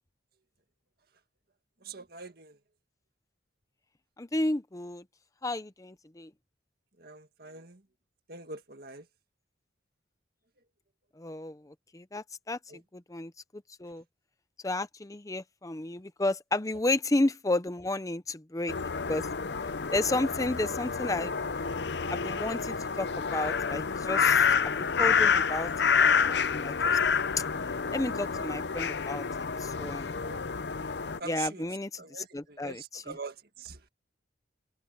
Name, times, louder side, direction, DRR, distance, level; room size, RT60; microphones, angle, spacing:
voice 1, 1.8-2.6 7.0-7.8 8.3-9.1 12.7-12.8 30.2-30.7 31.2-31.6 32.0-33.9, right 4 dB, 55° right, 1.9 m, -44 dB
voice 2, 4.2-5.0 5.4-6.3 11.2-11.6 11.9-12.6 12.9-13.3 13.8-14.0 14.6-18.7 19.1-19.3 19.9-21.3 22.1-23.1 23.3-24.5 25.0-25.7 26.0-27.1 27.9-29.2 29.6-30.2 31.3-32.0 32.3-33.0, left 2 dB, 15° left, 0.6 m, -32 dB
sound 1, 18.7-31.2, left 6 dB, 60° left, 0.6 m, -28 dB
head